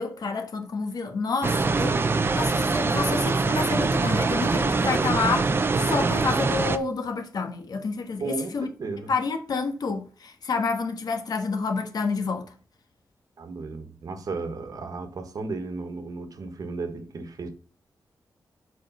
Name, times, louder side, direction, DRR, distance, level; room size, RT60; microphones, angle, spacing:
voice 1, 0.0-2.0 2.3-8.7 9.1-12.5, left 4 dB, 65° left, 1.3 m, -29 dB
sound 1, 1.4-6.8, right 3 dB, 30° right, 0.5 m, -23 dB
voice 2, 8.2-9.1 13.4-17.5, right 3 dB, 60° right, 1.3 m, -34 dB
7.5 x 4.5 x 5.5 m
wide cardioid pair, 170°, 7 cm